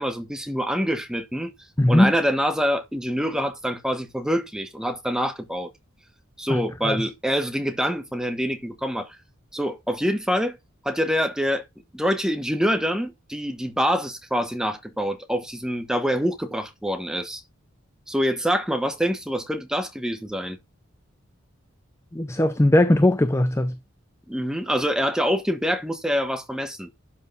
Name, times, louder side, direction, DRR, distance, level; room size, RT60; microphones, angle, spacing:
voice 1, 0.0-1.5 1.9-5.7 6.4-9.2 9.5-10.6 10.8-11.6 11.9-17.4 18.1-20.6 24.3-26.9, equal, 5° right, 1.2 m, -25 dB
voice 2, 1.8-2.1 6.5-7.1 22.1-23.8, left 1 dB, 15° left, 0.5 m, -19 dB
12.0 x 8.4 x 2.8 m
head